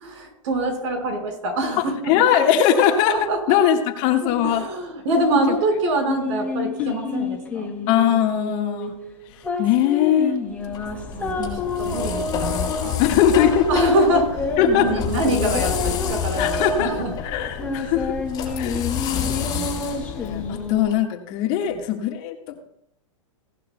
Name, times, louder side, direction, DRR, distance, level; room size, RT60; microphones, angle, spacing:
voice 1, 0.0-2.1 3.1-3.6 4.2-7.6 11.1-11.4 11.8-13.0 13.7-14.3 14.7-17.1 21.6-21.7, right 1 dB, 65° right, 2 dB, 4.7 m, -24 dB
voice 2, 1.8-4.7 5.3-5.6 6.8-7.2 7.9-8.9 9.6-10.3 11.4-11.6 12.0-12.2 12.8-13.7 14.6-14.9 16.4-16.9 17.2-18.1 18.6-18.9 19.2-22.7, left 9 dB, 45° left, 4 dB, 1.6 m, -21 dB
sound 1, 6.0-20.8, left 3 dB, 10° left, 2.0 m, -29 dB
sound 2, 10.6-20.9, left 8 dB, 25° left, 5.2 m, -29 dB
17.0 x 11.5 x 2.2 m, 0.76 s
hypercardioid pair, 130°, 17 cm